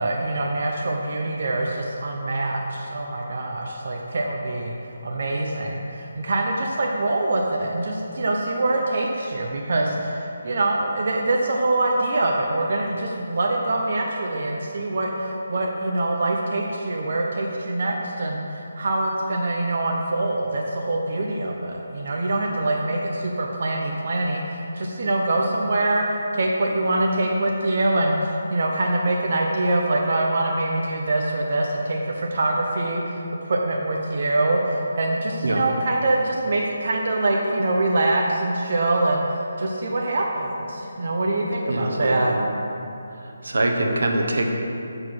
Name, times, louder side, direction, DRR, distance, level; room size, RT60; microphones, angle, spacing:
voice 1, 0.0-4.7 5.0-42.3, right 2 dB, 45° right, 0 dB, 0.7 m, -24 dB
voice 2, 41.6-42.4 43.4-44.5, right 1 dB, 80° right, 2 dB, 1.1 m, -24 dB
7.4 x 4.9 x 6.0 m, 2.8 s
hypercardioid pair, 175°, 0 cm